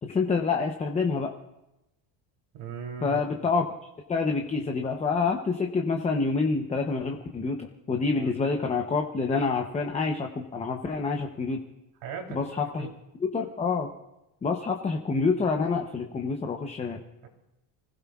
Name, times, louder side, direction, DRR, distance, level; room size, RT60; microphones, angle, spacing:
voice 1, 0.0-1.3 3.0-3.6 4.1-11.6 12.3-12.9 13.2-13.9 14.4-17.0, left 4 dB, 15° left, 3 dB, 0.8 m, -27 dB
voice 2, 2.5-3.2 8.1-8.3 12.0-12.9 17.2-17.3, right 6 dB, 65° right, 2 dB, 3.4 m, -38 dB
30.0 x 16.0 x 2.4 m, 0.91 s
cardioid pair, 155°, 44 cm